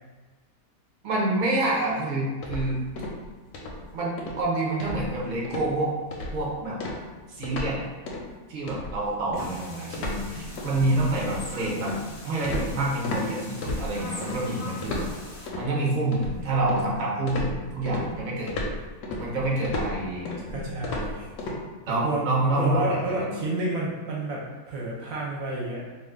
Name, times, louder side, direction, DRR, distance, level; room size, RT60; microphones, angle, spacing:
voice 1, 1.0-2.8 3.9-5.9 6.3-6.8 7.3-7.8 8.5-11.9 12.2-15.1 15.6-18.5 19.2-20.3 21.9-23.3, right 2 dB, 50° right, -4 dB, 0.5 m, -27 dB
sound 1, 2.4-3.3 3.5-3.8 4.2-4.4 4.8-5.2 5.4-5.7 6.1-6.4 6.8-7.8 8.1-8.3 8.7-13.3 13.6-14.4 14.8-15.7 16.1-16.9 17.3-21.6, left 1 dB, 70° left, 0.8 m, -33 dB
sound 2, 9.3-15.5, left 2 dB, 90° left, 0.4 m, -42 dB
voice 2, 20.5-21.3 21.9-25.9, right 2 dB, 70° right, -3 dB, 0.9 m, -30 dB
2.4 x 2.4 x 3.5 m, 1.3 s
omnidirectional pair, 1.6 m